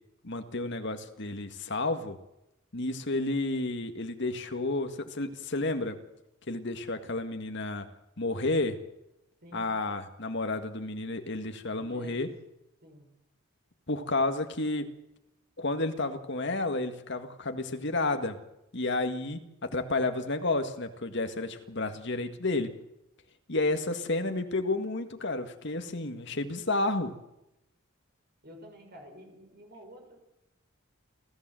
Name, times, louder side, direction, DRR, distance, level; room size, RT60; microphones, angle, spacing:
voice 1, 0.2-2.2 2.7-6.0 6.5-7.9 8.2-8.8 9.5-12.3 13.9-14.9 15.6-18.4 18.7-22.7 23.5-27.1, left 2 dB, 55° left, 7 dB, 1.9 m, -31 dB
voice 2, 11.7-12.2 12.8-13.1 28.4-30.2, equal, 45° right, 3 dB, 6.3 m, -49 dB
29.0 x 14.0 x 7.7 m, 0.90 s
head